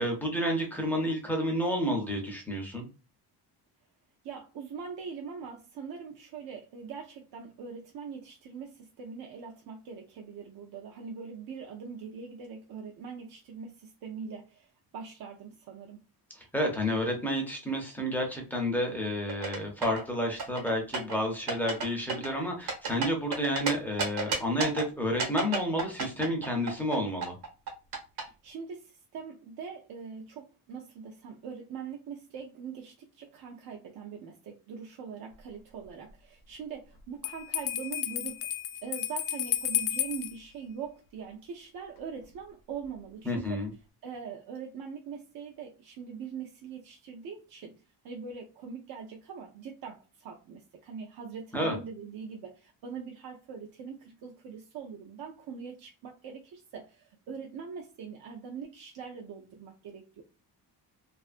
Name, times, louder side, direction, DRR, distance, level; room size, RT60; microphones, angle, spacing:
voice 1, 0.0-2.9 16.4-27.3 43.3-43.7 51.5-51.8, equal, 5° left, 0 dB, 0.5 m, -30 dB
voice 2, 4.2-16.0 28.2-38.5 38.8-43.6 44.0-60.2, right 6 dB, 65° right, 0 dB, 0.5 m, -42 dB
sound 1, 19.3-20.0 20.4-21.2 21.5-21.8 22.1-23.7 24.0-24.8 25.2-27.0 27.2-28.2, right 4 dB, 85° right, 1.1 m, -31 dB
Bell, 37.2-40.3, left 11 dB, 85° left, 0.5 m, -32 dB
2.4 x 2.4 x 2.4 m, 0.32 s
cardioid pair, 175°, 39 cm